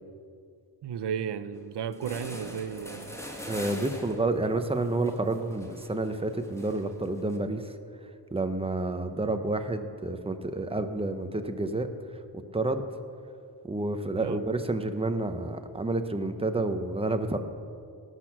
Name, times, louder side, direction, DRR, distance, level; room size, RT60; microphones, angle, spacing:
voice 1, 0.8-3.2 14.2-14.4, right 7 dB, 90° right, 13 dB, 0.6 m, -34 dB
sound 1, 1.6-1.7 1.9-7.4, equal, 5° left, 1.4 m, -43 dB
voice 2, 3.5-7.7 8.3-11.9 12.5-12.8 13.6-17.4, right 2 dB, 15° right, 8 dB, 0.7 m, -29 dB
18.5 x 6.3 x 6.0 m, 2.4 s
wide cardioid pair, 105°, 40 cm